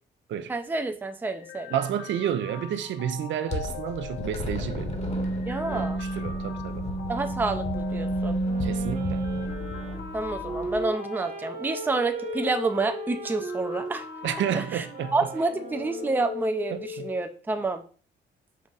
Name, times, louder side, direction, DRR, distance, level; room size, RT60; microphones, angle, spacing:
voice 1, 0.5-1.7 5.5-6.0 7.1-8.4 10.1-14.1 14.5-14.9 15.1-17.8, right 3 dB, 10° right, 0.5 m, -29 dB
sound 1, 1.2-17.2, left 9 dB, 65° left, 0.6 m, -40 dB
voice 2, 1.7-4.9 6.0-6.8 8.6-9.2 14.2-15.1 16.7-17.1, right 10 dB, 70° right, 0.5 m, -30 dB
sound 2, 3.5-10.8, right 1 dB, 35° left, 1.0 m, -31 dB
Wind instrument woodwind instrument, 8.4-16.7, right 5 dB, 40° right, 1.0 m, -39 dB
5.4 x 2.4 x 3.9 m
cardioid pair, 90°, 20 cm